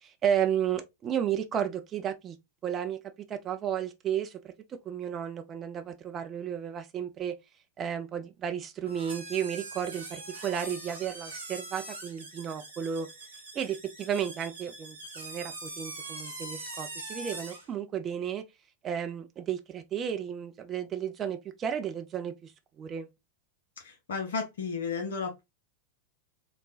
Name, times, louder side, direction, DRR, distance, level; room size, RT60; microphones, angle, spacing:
voice 1, 0.0-2.4 2.6-3.0 3.3-7.3 7.8-13.1 13.5-18.4 18.8-22.5 22.8-23.1, right 9 dB, 25° right, 0.4 m, -33 dB
sound 1, 8.9-17.7, right 2 dB, 75° right, 0.9 m, -42 dB
voice 2, 23.8-25.4, left 5 dB, 65° left, 0.6 m, -33 dB
3.1 x 2.1 x 2.4 m
figure-of-eight pair, 90°, 0 cm